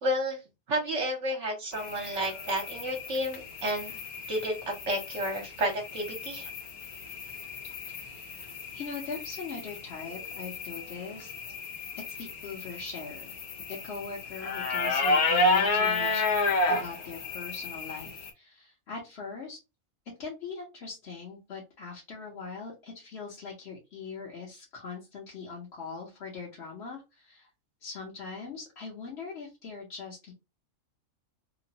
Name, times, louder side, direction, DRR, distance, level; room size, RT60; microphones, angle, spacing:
voice 1, 0.0-0.4 0.7-4.0 4.3-6.5, equal, 60° right, 1 dB, 1.1 m, -31 dB
sound 1, 1.7-18.3, left 2 dB, 90° left, 1.2 m, -32 dB
voice 2, 7.9-8.3 8.7-11.3 11.9-13.4 13.7-16.3 16.7-19.6 20.2-27.5 27.8-30.3, left 5 dB, 55° left, -4 dB, 1.0 m, -41 dB
2.9 x 2.1 x 2.6 m, 0.26 s
omnidirectional pair, 1.5 m